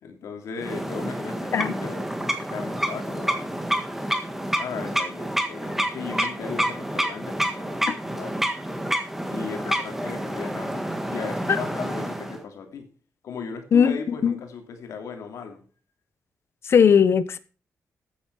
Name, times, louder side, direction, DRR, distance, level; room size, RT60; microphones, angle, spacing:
voice 1, 0.0-3.5 4.5-8.4 9.3-12.9 13.2-15.6, left 5 dB, 90° left, 2.9 m, -37 dB
sound 1, 0.6-12.4, right 1 dB, 5° right, 1.6 m, -28 dB
voice 2, 16.7-17.4, left 7 dB, 55° left, 0.9 m, -17 dB
13.5 x 9.1 x 4.7 m
wide cardioid pair, 135°, 5 cm